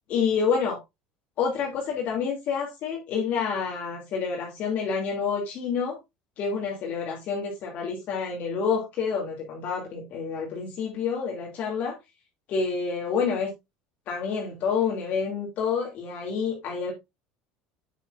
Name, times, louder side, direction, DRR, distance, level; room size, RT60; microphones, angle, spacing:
voice 1, 0.1-0.8 1.4-6.0 6.4-12.0 12.5-13.5 14.1-16.9, left 6 dB, 50° left, 2.7 m, -28 dB
8.3 x 7.6 x 2.6 m
supercardioid pair, 125°, 3 cm